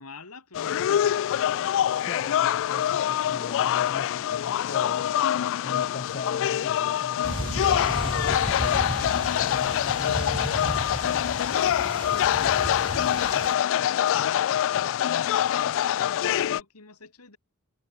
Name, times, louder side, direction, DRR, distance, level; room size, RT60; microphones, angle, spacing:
voice 1, 0.0-1.8 11.4-17.4, left 3 dB, 90° left, 2.8 m, -46 dB
sound 1, 0.5-16.6, left 10 dB, 60° left, 0.3 m, -25 dB
voice 2, 2.0-5.1 5.6-10.6, left 3 dB, 40° left, 0.9 m, -40 dB
sound 2, 7.2-13.5, right 2 dB, 25° right, 0.8 m, -34 dB
head